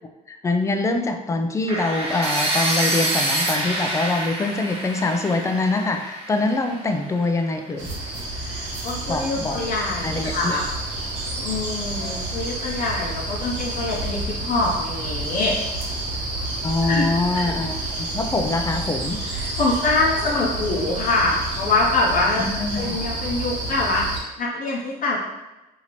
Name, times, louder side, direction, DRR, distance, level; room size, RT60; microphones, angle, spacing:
voice 1, 0.3-7.9 9.1-9.6 10.0-10.6 16.6-19.2 22.4-22.8, left 2 dB, 20° left, 5 dB, 0.4 m, -24 dB
sound 1, 1.7-7.6, right 1 dB, 35° right, 1.0 m, -26 dB
sound 2, 7.8-24.2, right 2 dB, 85° right, 1.0 m, -29 dB
voice 2, 8.4-10.7 11.4-15.6 16.8-17.1 17.4-17.5 19.2-22.4 22.7-25.2, left 2 dB, 55° left, -4 dB, 0.7 m, -24 dB
3.0 x 2.8 x 4.1 m, 1.0 s
cardioid pair, 110°, 17 cm